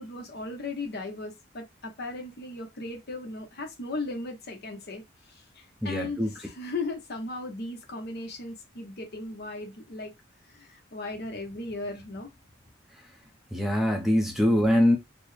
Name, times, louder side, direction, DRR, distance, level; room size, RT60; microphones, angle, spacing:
voice 1, 0.0-10.1 10.5-12.3, left 2 dB, 55° left, 1.0 m, -37 dB
voice 2, 5.8-6.3 13.5-15.0, left 1 dB, ahead, 0.7 m, -23 dB
4.2 x 2.2 x 3.2 m
head